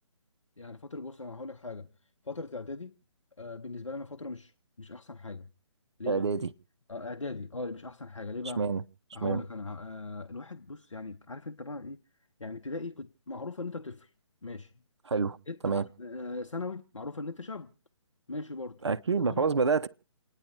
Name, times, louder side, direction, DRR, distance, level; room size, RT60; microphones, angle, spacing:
voice 1, 0.6-1.9 2.2-2.9 3.4-4.5 4.8-5.5 6.0-6.3 6.9-8.7 9.1-12.0 12.4-14.1 14.4-14.7 15.5-17.7 18.3-18.8 19.3-19.5, left 3 dB, 80° left, 0.8 m, -39 dB
voice 2, 6.1-6.5 8.6-8.8 9.2-9.4 15.1-15.4 15.6-15.8 18.8-19.9, right 5 dB, 60° right, 0.8 m, -27 dB
29.0 x 10.0 x 3.3 m
figure-of-eight pair, 145°, 16 cm